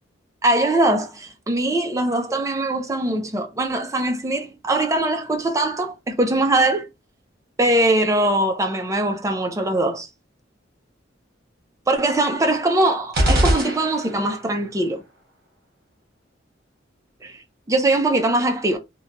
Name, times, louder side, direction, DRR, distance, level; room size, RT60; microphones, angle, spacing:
voice 1, 0.4-6.9 7.6-10.1 11.9-15.0 17.2-17.4 17.7-18.8, right 2 dB, 15° right, 0.4 m, -21 dB
sound 1, 13.1-14.4, right 1 dB, 55° right, 1.1 m, -21 dB
2.9 x 2.2 x 2.5 m
head